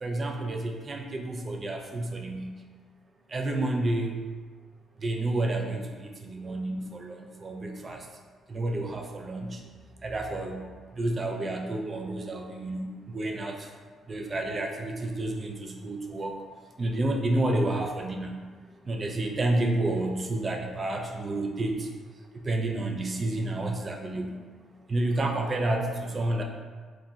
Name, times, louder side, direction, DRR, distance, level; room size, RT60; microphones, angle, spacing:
voice 1, 0.0-2.6 3.3-4.3 5.0-8.0 8.5-9.6 10.0-13.7 14.1-16.4 16.8-18.4 18.9-21.9 22.4-24.4 24.9-26.4, right 2 dB, 35° right, 2 dB, 0.4 m, -30 dB
2.2 x 2.1 x 3.7 m, 1.5 s
cardioid pair, 90°, 0 cm